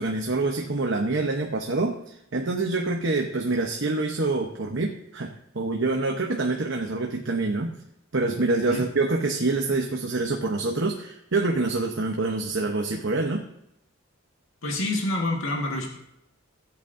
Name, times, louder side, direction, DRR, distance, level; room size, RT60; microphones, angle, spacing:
voice 1, 0.0-7.7 8.1-13.4, right 3 dB, 60° right, 2 dB, 0.9 m, -26 dB
voice 2, 14.6-16.0, left 2 dB, 75° left, 0 dB, 1.7 m, -27 dB
17.5 x 8.2 x 2.6 m, 0.79 s
head